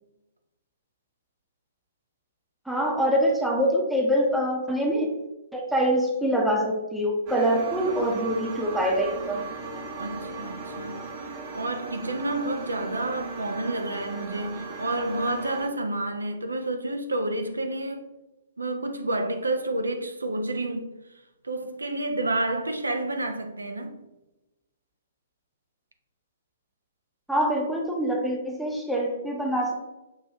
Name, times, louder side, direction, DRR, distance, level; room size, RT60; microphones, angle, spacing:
voice 1, 2.7-5.2 5.5-9.5 27.3-29.7, equal, ahead, 0.7 m, -25 dB
sound 1, 7.3-15.7, right 3 dB, 35° right, 0.8 m, -37 dB
voice 2, 10.0-11.1 11.5-18.0 18.6-20.9 21.4-24.0, right 2 dB, 75° right, 0.5 m, -29 dB
6.0 x 2.6 x 3.3 m
figure-of-eight pair, 120°, 0 cm